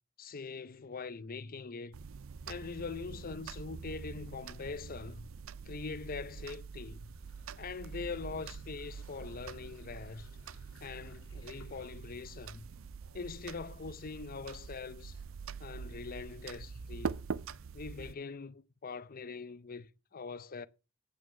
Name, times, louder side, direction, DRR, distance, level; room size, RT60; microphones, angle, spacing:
voice 1, 0.2-2.0 2.5-5.3 5.6-7.1 7.6-10.3 10.8-12.7 13.1-15.2 15.6-17.2 17.7-20.7, left 4 dB, 45° left, 0.6 m, -43 dB
sound 1, 1.9-18.1, right 5 dB, 70° right, 0.5 m, -45 dB
sound 2, 6.8-12.8, left 2 dB, 75° left, 3.4 m, -61 dB
9.4 x 8.8 x 6.6 m
head